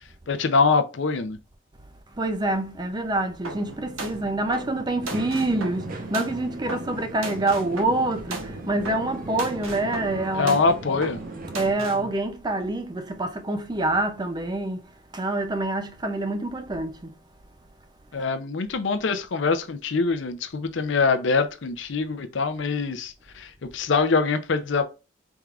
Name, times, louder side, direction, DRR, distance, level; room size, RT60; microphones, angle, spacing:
voice 1, 0.3-1.4 10.3-11.2 18.1-24.8, left 4 dB, 60° left, 0.5 m, -24 dB
voice 2, 2.2-10.6 11.5-14.8 15.1-17.1, right 2 dB, 20° right, 0.5 m, -26 dB
sound 1, 3.4-12.1, right 2 dB, 80° right, 1.1 m, -37 dB
sound 2, 5.0-11.7, right 2 dB, 45° right, 0.8 m, -38 dB
4.5 x 3.6 x 2.4 m
head